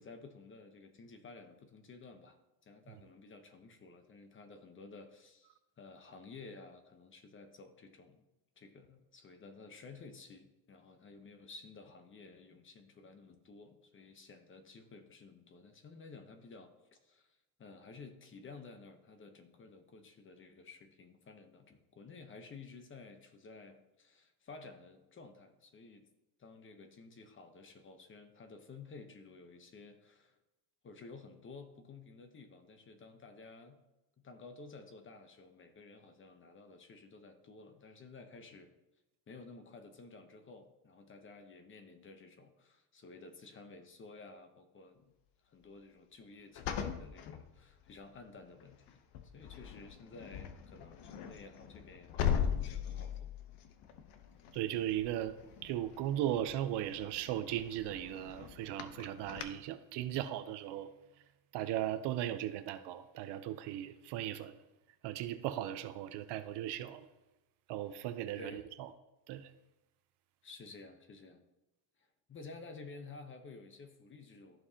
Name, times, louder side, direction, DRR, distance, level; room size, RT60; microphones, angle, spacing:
voice 1, 0.0-8.2 8.6-26.1 26.4-30.4 30.8-33.8 34.2-38.7 39.3-45.1 45.4-49.0 49.3-53.3 68.4-68.7 70.4-71.4 72.0-74.7, left 4 dB, 25° left, 7 dB, 0.9 m, -53 dB
sound 1, 46.5-48.1 48.6-48.9 49.1-59.4, left 8 dB, 60° left, 0.9 m, -40 dB
voice 2, 54.5-55.3 55.6-60.9 61.5-64.5 65.0-67.1 67.7-68.9 69.3-69.5, right 12 dB, 60° right, 11 dB, 0.7 m, -37 dB
14.0 x 4.7 x 2.8 m, 1.0 s
cardioid pair, 130°, 46 cm